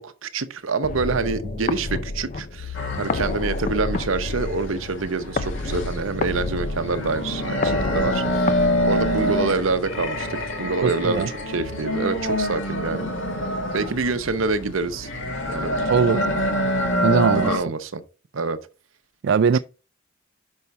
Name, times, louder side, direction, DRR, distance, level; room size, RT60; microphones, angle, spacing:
voice 1, 0.0-13.1 13.7-15.1 15.5-15.7 17.3-18.0 18.3-18.6 19.5-19.6, right 4 dB, 75° right, 0.8 m, -26 dB
sound 1, 0.8-9.8, left 3 dB, 40° left, 0.4 m, -30 dB
sound 2, 2.7-17.6, equal, 70° left, 2.0 m, -26 dB
voice 2, 10.8-11.3 15.9-16.3 17.0-17.5 19.2-19.6, right 6 dB, 60° right, 0.3 m, -20 dB
5.6 x 5.4 x 4.6 m
head